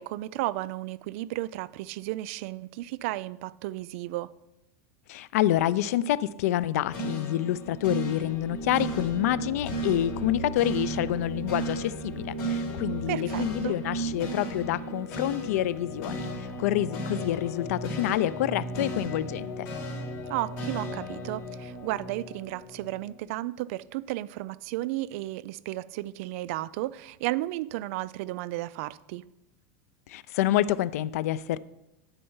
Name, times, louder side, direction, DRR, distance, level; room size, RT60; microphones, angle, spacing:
voice 1, 0.0-4.3 13.1-13.8 20.3-29.2, right 17 dB, 65° right, 0.3 m, -33 dB
voice 2, 5.1-19.7 30.1-31.6, left 13 dB, 85° left, 0.4 m, -27 dB
sound 1, 6.9-23.2, right 2 dB, 55° left, 3.1 m, -35 dB
9.8 x 4.3 x 5.5 m
supercardioid pair, 135°, 8 cm